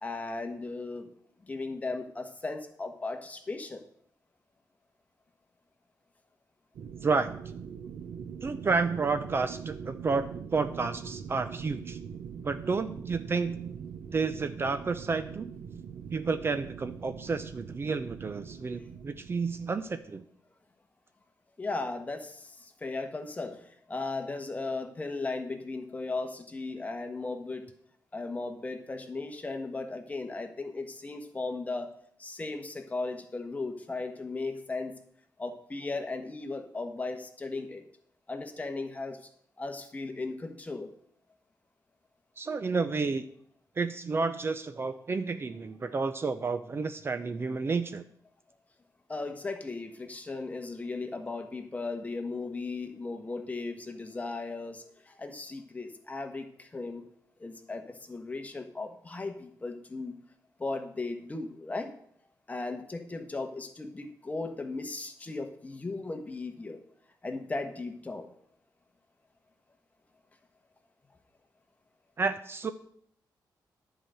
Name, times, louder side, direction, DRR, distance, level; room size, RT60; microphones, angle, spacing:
voice 1, 0.0-1.1 1.5-3.8 21.6-27.7 28.1-31.9 32.2-34.9 35.4-37.8 38.3-39.3 39.6-40.9 49.1-57.0 57.4-60.1 60.6-61.9 62.5-66.8 67.2-68.3, left 3 dB, 20° left, 6 dB, 1.2 m, -36 dB
sound 1, 6.7-20.1, right 7 dB, 90° right, 0.7 m, -43 dB
voice 2, 7.0-7.3 8.4-12.0 12.4-13.8 14.1-15.5 16.1-20.2 42.4-43.2 43.8-48.0 72.2-72.7, right 4 dB, 35° right, 10 dB, 0.6 m, -31 dB
10.5 x 5.0 x 7.7 m, 0.64 s
wide cardioid pair, 130°, 7 cm